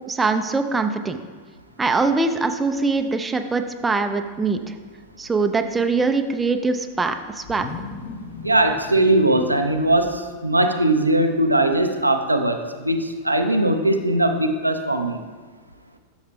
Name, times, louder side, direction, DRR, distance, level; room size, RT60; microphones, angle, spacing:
voice 1, 0.1-1.2 1.8-4.7 5.2-7.6, right 3 dB, 15° right, 7 dB, 0.4 m, -22 dB
sound 1, 1.7-3.1 3.4-10.5, left 4 dB, 40° left, 0.8 m, -42 dB
voice 2, 8.4-15.2, right 1 dB, 85° right, 5 dB, 0.5 m, -20 dB
12.0 x 6.4 x 2.3 m, 1.4 s
figure-of-eight pair, 90°, 0 cm